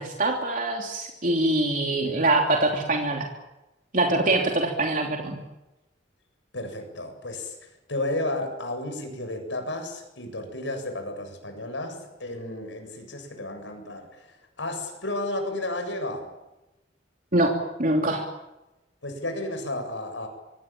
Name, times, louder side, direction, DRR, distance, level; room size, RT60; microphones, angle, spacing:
voice 1, 0.0-3.3 3.9-5.4 17.3-18.2, right 2 dB, 45° right, 1 dB, 3.2 m, -24 dB
voice 2, 6.5-7.6 7.9-14.2 14.6-16.3 19.0-20.3, left 1 dB, 85° left, 5 dB, 7.8 m, -32 dB
25.5 x 23.5 x 9.0 m, 0.97 s
head